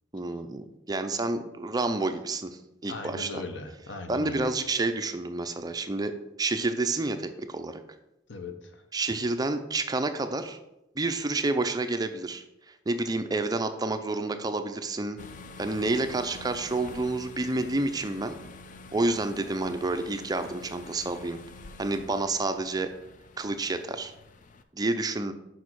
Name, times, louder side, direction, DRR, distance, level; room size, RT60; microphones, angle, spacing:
voice 1, 0.1-3.4 4.1-7.8 8.9-10.6 11.0-15.2 15.6-18.4 18.9-21.4 21.8-22.9 23.4-24.1 24.7-25.3, right 2 dB, 20° right, 8 dB, 0.4 m, -29 dB
voice 2, 2.9-4.5 8.3-8.8, left 3 dB, 85° left, 6 dB, 0.9 m, -39 dB
sound 1, 15.2-24.6, left 3 dB, 45° left, 0.4 m, -47 dB
6.3 x 5.5 x 4.6 m, 0.91 s
head